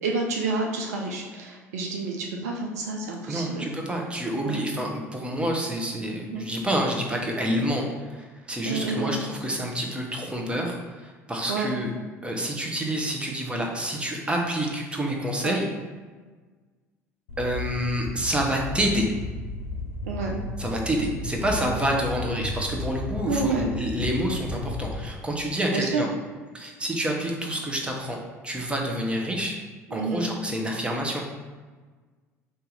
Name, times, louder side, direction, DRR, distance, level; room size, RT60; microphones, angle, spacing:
voice 1, 0.0-3.6 4.4-4.6 6.3-6.4 8.6-9.2 11.5-11.7 15.4-15.6 20.0-20.4 23.3-23.7 25.7-26.0 29.9-30.3, right 3 dB, 75° right, 1 dB, 0.5 m, -29 dB
voice 2, 3.3-11.9 12.2-15.7 17.4-19.1 20.6-26.1 26.5-29.6 29.9-31.2, right 1 dB, 10° right, 0 dB, 0.9 m, -28 dB
sound 1, 17.3-25.1, left 2 dB, 75° left, 0.6 m, -34 dB
3.9 x 2.8 x 3.9 m, 1.4 s
figure-of-eight pair, 65°, 9 cm